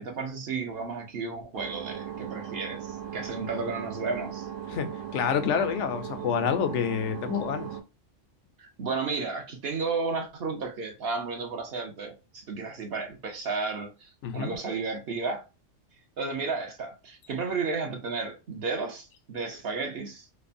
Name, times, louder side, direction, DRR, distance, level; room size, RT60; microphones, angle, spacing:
voice 1, 0.0-4.5 8.6-15.4 16.2-20.3, right 4 dB, 60° right, 0.9 m, -33 dB
sound 1, 1.5-7.8, right 9 dB, 85° right, 1.0 m, -38 dB
voice 2, 4.7-7.7 14.2-14.5, left 7 dB, 80° left, 0.9 m, -28 dB
3.2 x 2.1 x 2.4 m
omnidirectional pair, 1.3 m